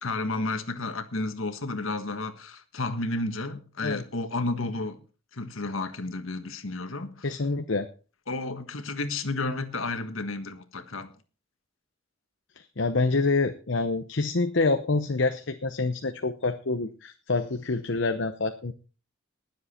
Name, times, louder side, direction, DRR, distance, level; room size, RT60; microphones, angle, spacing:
voice 1, 0.0-5.0 5.3-7.3 8.3-11.1, left 2 dB, 75° left, 1.5 m, -32 dB
voice 2, 7.2-7.9 12.6-18.7, left 3 dB, 60° left, 0.8 m, -27 dB
20.0 x 7.5 x 4.3 m
head